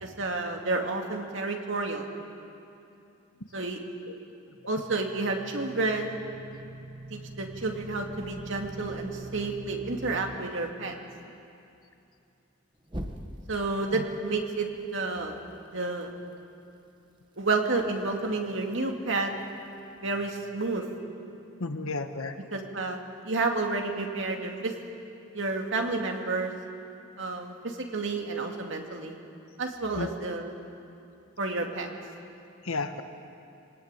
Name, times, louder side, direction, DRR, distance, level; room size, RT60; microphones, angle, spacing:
voice 1, 0.0-2.0 3.5-3.8 4.7-6.1 7.1-10.9 13.5-14.7 14.9-15.3 15.7-16.1 17.4-19.3 20.0-20.8 22.5-23.0 23.2-24.7 25.3-26.5 27.2-29.2 29.6-30.5 31.4-31.9, right 3 dB, 65° right, 2 dB, 2.4 m, -30 dB
sound 1, 4.6-10.4 12.9-13.6, right 1 dB, 20° right, 1.4 m, -42 dB
voice 2, 21.6-22.4 30.0-30.1 32.6-33.0, left 3 dB, 85° left, 7 dB, 1.4 m, -32 dB
24.5 x 19.0 x 9.1 m, 2.7 s
head